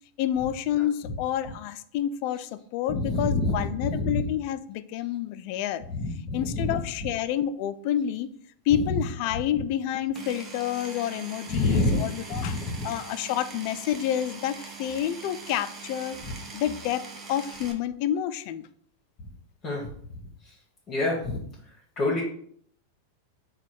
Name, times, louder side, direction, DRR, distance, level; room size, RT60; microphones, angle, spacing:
voice 1, 0.2-5.8 6.3-8.3 8.7-16.2 16.5-18.7, left 10 dB, 55° left, 13 dB, 0.3 m, -29 dB
voice 2, 2.9-4.2 5.9-6.7 11.5-12.0 12.3-12.8 19.6-19.8 20.9-21.4 22.0-22.2, left 2 dB, 30° left, -4 dB, 1.1 m, -27 dB
Power tool, 10.1-17.7, right 4 dB, 25° right, 0.8 m, -42 dB
4.1 x 2.3 x 4.6 m, 0.63 s
hypercardioid pair, 105°, 0 cm